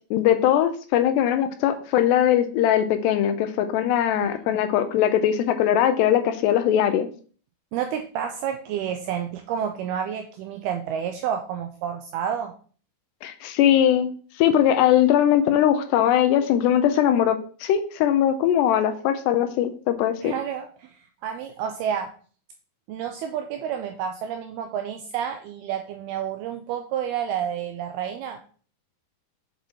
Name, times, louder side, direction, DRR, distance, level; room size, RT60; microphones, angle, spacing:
voice 1, 0.1-7.1 13.2-14.1 14.4-20.3, left 10 dB, 80° left, 9 dB, 2.7 m, -20 dB
voice 2, 4.2-4.6 7.7-12.5 20.2-22.1 22.9-28.4, right 8 dB, 85° right, 6 dB, 2.3 m, -30 dB
7.7 x 7.0 x 4.5 m, 0.43 s
omnidirectional pair, 5.2 m